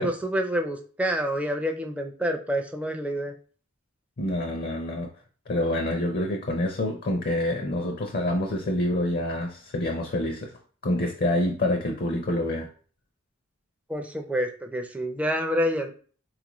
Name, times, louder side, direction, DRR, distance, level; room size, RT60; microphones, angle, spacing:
voice 1, 0.0-3.3 13.9-15.9, equal, 5° right, 3 dB, 0.4 m, -27 dB
voice 2, 4.2-5.1 5.5-10.5 10.8-12.7, left 1 dB, 50° left, 3 dB, 0.5 m, -27 dB
4.0 x 2.4 x 3.0 m, 0.42 s
head